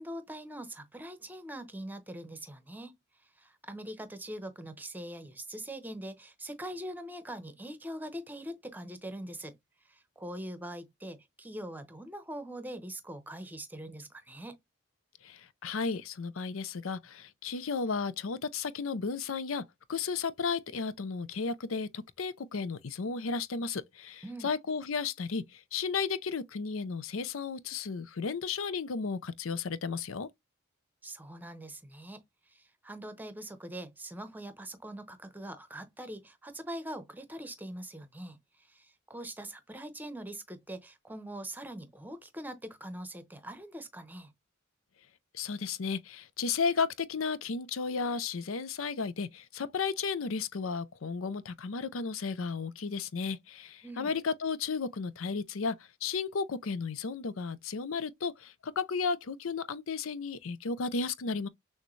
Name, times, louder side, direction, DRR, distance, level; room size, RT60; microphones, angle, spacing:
voice 1, 0.0-3.0 3.2-9.6 9.8-14.6 24.2-24.5 31.0-32.2 32.5-44.3 53.8-54.1, right 1 dB, 10° right, 0.8 m, -43 dB
voice 2, 15.2-30.3 45.3-61.5, left 5 dB, 70° left, 0.6 m, -34 dB
6.4 x 2.2 x 3.1 m
head